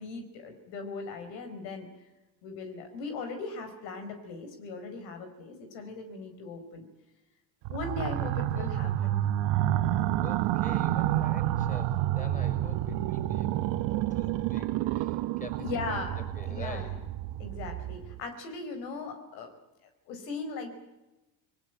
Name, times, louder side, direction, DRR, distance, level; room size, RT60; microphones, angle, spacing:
voice 1, 0.0-1.9 2.4-6.8 7.7-9.3 15.6-16.2 16.5-16.9 17.4-19.5 20.1-20.7, left 4 dB, 80° left, 6 dB, 4.9 m, -38 dB
sound 1, 7.6-18.2, right 13 dB, 60° right, 1.3 m, -29 dB
voice 2, 8.5-9.1 10.2-13.5 14.1-15.8 16.3-16.9, left 2 dB, 15° left, 7 dB, 6.3 m, -45 dB
28.0 x 21.0 x 9.1 m, 1.0 s
hypercardioid pair, 85°, 50 cm